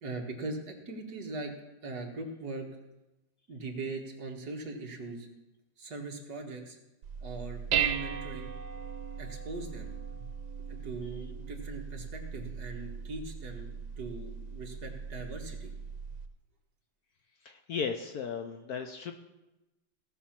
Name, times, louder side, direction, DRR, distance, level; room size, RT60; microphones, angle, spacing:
voice 1, 0.0-1.5 1.8-2.7 3.5-5.3 5.8-6.8 7.2-8.5 9.2-9.9 10.2-10.3 10.7-15.7, right 3 dB, 55° right, 1 dB, 2.0 m, -40 dB
Dishes pots and pans, 7.0-16.3, right 7 dB, 85° right, 1.6 m, -37 dB
voice 2, 17.4-19.1, left 6 dB, 65° left, 6 dB, 1.0 m, -35 dB
17.0 x 6.2 x 5.9 m, 1.0 s
omnidirectional pair, 2.1 m